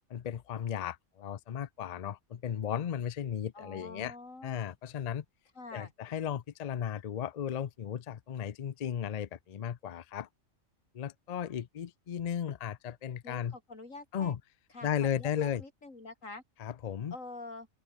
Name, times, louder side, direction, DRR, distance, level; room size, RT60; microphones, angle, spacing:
voice 1, 0.1-4.1 4.4-5.2 5.7-10.3 10.9-13.6 14.1-14.4 14.8-15.6 16.6-17.2, left 9 dB, 50° left, 0.5 m, -35 dB
voice 2, 3.5-4.7 5.5-5.9 13.2-14.3 14.7-16.4 17.1-17.7, left 3 dB, 85° left, 4.6 m, -46 dB
open air
omnidirectional pair, 1.3 m